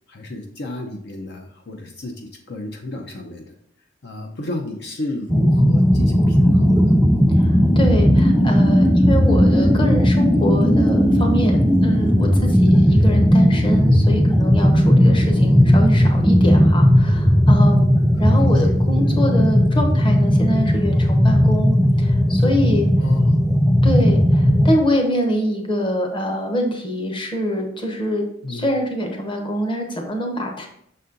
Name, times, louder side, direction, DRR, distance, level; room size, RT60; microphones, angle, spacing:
voice 1, 0.1-3.4 4.0-7.0 12.8-13.0 15.3-15.6 18.2-18.6 18.9-19.2 23.0-23.4 28.4-28.6, left 2 dB, 60° left, 3 dB, 0.7 m, -32 dB
sound 1, 5.3-24.7, equal, ahead, 0.4 m, -16 dB
voice 2, 7.4-17.9 18.2-22.9 23.8-30.7, equal, 25° left, 2 dB, 1.0 m, -24 dB
6.5 x 4.2 x 3.8 m, 0.69 s
head